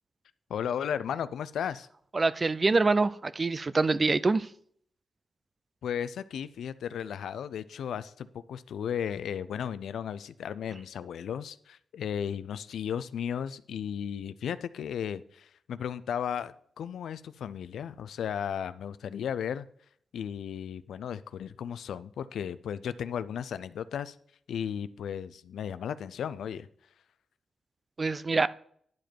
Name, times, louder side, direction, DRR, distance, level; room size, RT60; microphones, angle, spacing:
voice 1, 0.5-1.9 5.8-19.7 20.1-24.2 24.5-26.7, left 8 dB, 85° left, 0.4 m, -35 dB
voice 2, 2.1-4.5 28.0-28.5, right 3 dB, 40° right, 0.4 m, -25 dB
10.5 x 5.0 x 4.5 m
cardioid pair, 55°, 0 cm